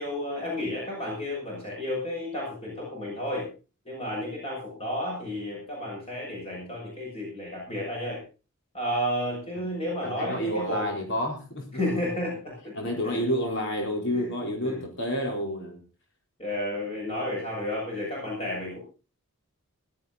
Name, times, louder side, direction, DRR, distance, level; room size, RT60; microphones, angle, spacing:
voice 1, 0.0-3.5 3.9-8.2 8.7-10.9 11.7-13.2 14.1-14.3 14.7-14.9 16.4-18.8, left 1 dB, 25° left, -3 dB, 7.1 m, -32 dB
voice 2, 10.0-11.7 12.8-15.8, equal, 55° left, 1 dB, 4.1 m, -29 dB
17.5 x 12.5 x 4.2 m, 0.33 s
head